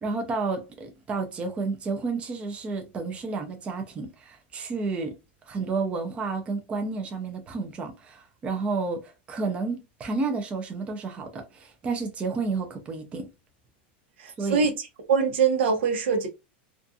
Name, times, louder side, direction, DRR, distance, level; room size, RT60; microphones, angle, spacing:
voice 1, 0.0-5.1 5.5-13.3 14.4-14.7, right 4 dB, 20° right, 0.4 m, -31 dB
voice 2, 14.2-16.3, right 6 dB, 85° right, 0.8 m, -24 dB
2.4 x 2.3 x 2.5 m
supercardioid pair, 155°, 6 cm